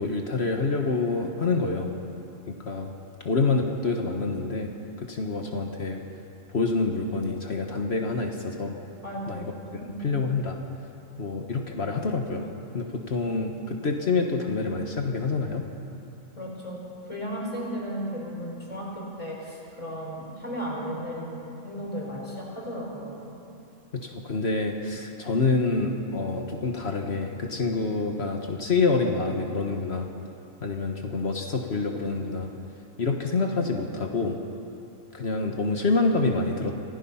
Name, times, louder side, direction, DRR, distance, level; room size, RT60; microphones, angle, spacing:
voice 1, 0.0-1.9 2.5-2.9 3.2-4.7 5.0-6.0 6.5-8.8 9.3-9.5 10.0-10.6 11.2-12.5 12.7-15.7 23.9-30.1 30.6-32.5 33.0-34.4 35.1-36.9, left 3 dB, 55° left, 3 dB, 1.6 m, -27 dB
voice 2, 9.0-10.1 16.4-16.8 17.1-23.3, equal, 25° left, -4 dB, 5.3 m, -35 dB
26.5 x 17.0 x 5.7 m, 2.7 s
omnidirectional pair, 1.3 m